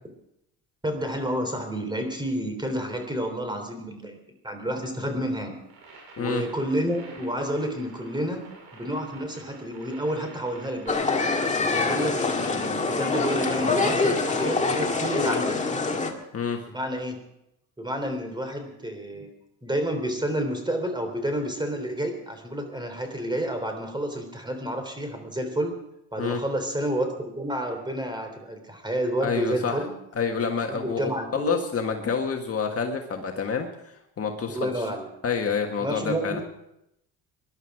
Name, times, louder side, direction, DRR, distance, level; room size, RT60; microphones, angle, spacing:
voice 1, 0.8-4.2 4.4-5.6 6.2-8.4 8.7-11.0 11.6-15.6 16.7-17.2 17.8-19.3 19.6-25.8 26.1-29.9 30.7-31.6 34.5-35.1 35.8-36.4, right 1 dB, 10° right, 6 dB, 3.5 m, -30 dB
sound 1, 5.6-15.2, right 3 dB, 75° right, 6.7 m, -49 dB
sound 2, 10.9-16.1, left 3 dB, 20° left, 2.0 m, -25 dB
voice 2, 29.2-29.8 30.2-34.9 35.2-36.4, left 6 dB, 35° left, 3 dB, 1.7 m, -28 dB
19.5 x 11.5 x 4.8 m, 0.82 s
cardioid pair, 100°, 38 cm